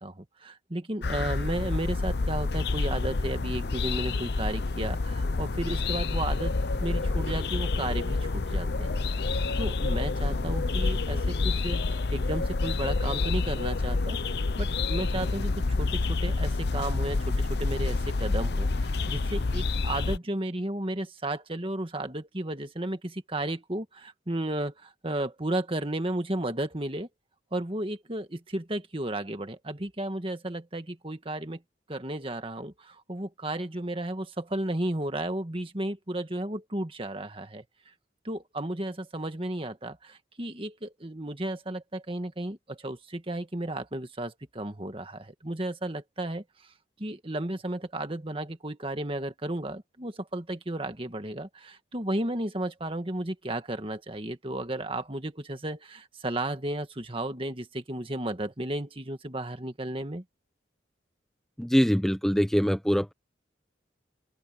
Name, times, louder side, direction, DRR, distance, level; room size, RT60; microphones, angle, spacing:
voice 1, 0.0-9.0 9.3-14.2 14.6-27.1 27.5-31.6 31.9-37.6 38.2-46.4 47.0-60.2, right 1 dB, 30° right, 1.8 m, -33 dB
sound 1, 1.0-20.2, left 3 dB, 60° left, 0.7 m, -28 dB
voice 2, 61.6-63.1, equal, ahead, 1.0 m, -23 dB
open air
head